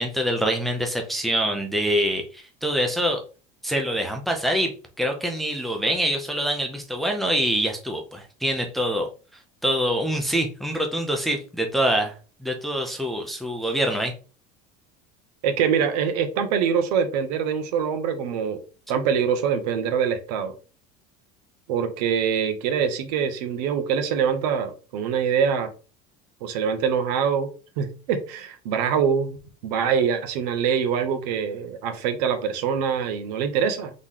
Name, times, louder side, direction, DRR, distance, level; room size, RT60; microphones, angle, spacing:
voice 1, 0.0-3.2 3.6-9.1 9.6-12.1 12.4-14.1, equal, ahead, 3 dB, 0.5 m, -25 dB
voice 2, 15.4-18.6 18.9-20.5 21.7-25.7 26.4-27.5 27.8-29.4 29.6-33.9, right 7 dB, 90° right, 8 dB, 1.0 m, -24 dB
3.9 x 3.1 x 3.7 m, 0.35 s
cardioid pair, 175°, 20 cm